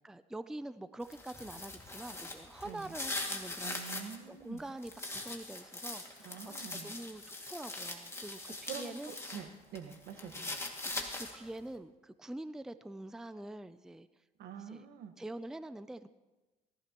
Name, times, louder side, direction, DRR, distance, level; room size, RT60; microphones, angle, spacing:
voice 1, 0.0-3.8 4.3-9.1 10.4-10.6 11.0-14.1 14.6-14.9 15.2-16.1, right 1 dB, 5° right, 12 dB, 0.4 m, -45 dB
sound 1, 1.0-4.2 4.6-9.4 9.8-11.5, left 2 dB, 15° left, 2.2 m, -41 dB
voice 2, 3.6-4.6 6.2-6.9 8.7-10.6 14.4-15.1, right 7 dB, 75° right, 6 dB, 1.5 m, -46 dB
18.5 x 15.5 x 3.0 m, 1.1 s
cardioid pair, 110°, 17 cm